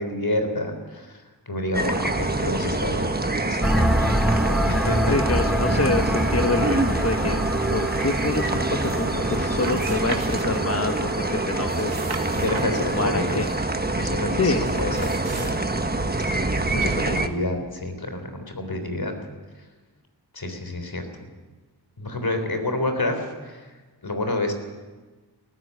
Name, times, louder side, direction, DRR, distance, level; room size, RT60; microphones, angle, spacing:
voice 1, 0.0-3.7 4.7-5.1 12.3-13.5 14.0-15.1 15.4-15.6 16.1-16.4 16.8-19.1 20.3-21.0 22.0-23.7 24.0-24.5, left 2 dB, 60° left, 6 dB, 3.7 m, -29 dB
sound 1, 1.7-17.3, right 2 dB, 25° right, 1.3 m, -25 dB
sound 2, 3.6-13.1, equal, ahead, 0.9 m, -27 dB
voice 2, 5.1-7.4 7.7-12.0 12.6-13.5 14.3-14.6 16.7-17.2, left 3 dB, 35° left, 5 dB, 1.2 m, -26 dB
sound 3, 8.1-9.1 9.3-11.0 11.5-13.6 14.7-15.5, right 3 dB, 65° right, 2.4 m, -38 dB
18.5 x 15.0 x 9.6 m, 1.3 s
wide cardioid pair, 60°, 41 cm